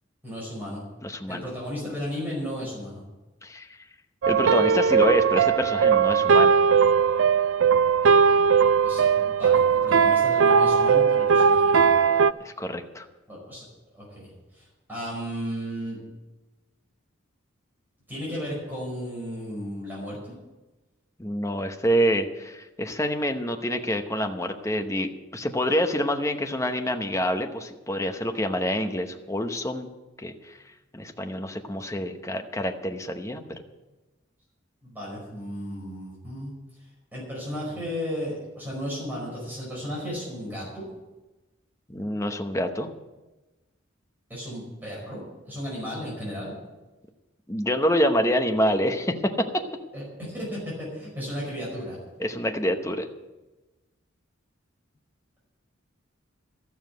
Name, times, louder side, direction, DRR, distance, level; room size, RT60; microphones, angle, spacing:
voice 1, 0.2-0.8 1.3-3.0 8.8-11.9 13.3-13.6 13.9-16.0 18.1-20.3 34.8-36.5 37.1-40.8 44.3-46.6 49.9-52.0, equal, 10° right, -5 dB, 5.1 m, -34 dB
voice 2, 1.0-1.5 3.4-3.7 4.3-6.5 12.4-13.1 21.2-29.9 30.2-30.6 30.9-33.6 41.9-42.9 47.5-49.6 52.2-53.1, equal, 15° left, 5 dB, 0.9 m, -27 dB
sound 1, 4.2-12.3, right 6 dB, 75° right, 0.4 m, -19 dB
13.0 x 7.2 x 9.4 m, 1.1 s
head